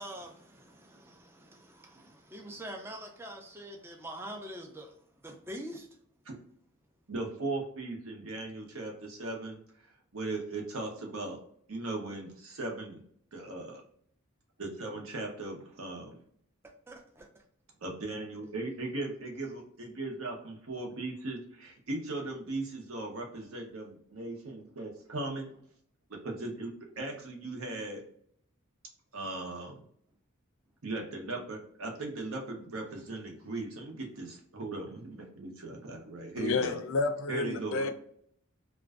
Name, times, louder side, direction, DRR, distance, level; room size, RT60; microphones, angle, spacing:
voice 1, 0.0-5.0 5.2-5.9 16.9-17.3, right 1 dB, 10° right, 0.3 m, -44 dB
voice 2, 7.1-9.6 10.1-11.4 11.7-13.0 13.3-13.8 14.6-16.2 17.8-25.6 26.2-28.0 29.1-29.7 30.8-36.8 37.3-37.9, right 2 dB, 70° right, 0.7 m, -38 dB
voice 3, 36.4-37.9, left 3 dB, 65° left, 0.4 m, -30 dB
2.5 x 2.2 x 2.3 m
head